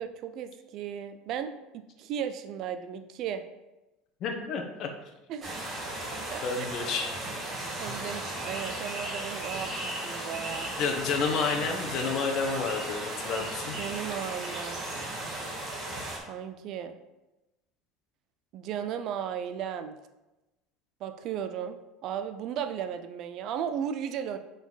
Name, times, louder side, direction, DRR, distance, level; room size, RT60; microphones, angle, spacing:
voice 1, 0.0-3.4 5.3-5.5 6.3-6.7 7.8-10.7 13.8-14.8 16.3-17.0 18.5-20.0 21.0-21.8 22.0-24.4, right 8 dB, 50° right, 9 dB, 0.4 m, -35 dB
voice 2, 4.2-4.9 6.4-7.1 10.8-13.8, left 5 dB, 45° left, 3 dB, 1.0 m, -30 dB
sound 1, 5.4-16.2, right 1 dB, 20° right, 1.6 m, -36 dB
7.1 x 3.9 x 4.0 m, 1.0 s
cardioid pair, 150°, 0 cm